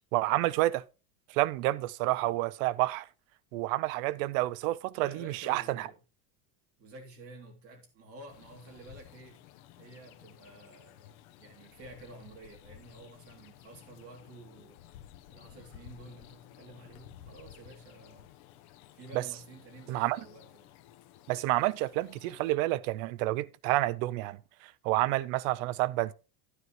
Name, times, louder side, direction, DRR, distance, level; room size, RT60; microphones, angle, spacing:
voice 1, 0.1-0.8 1.3-3.1 3.5-5.9 19.1-19.2 19.9-20.2 21.3-26.1, right 17 dB, 65° right, 0.6 m, -29 dB
voice 2, 4.9-6.0 6.8-9.5 9.8-14.8 15.3-18.3 18.9-20.7, right 2 dB, 30° right, 2.9 m, -51 dB
sound 1, 8.3-22.6, left 12 dB, 70° left, 1.1 m, -54 dB
11.0 x 9.6 x 3.1 m
cardioid pair, 170°, 44 cm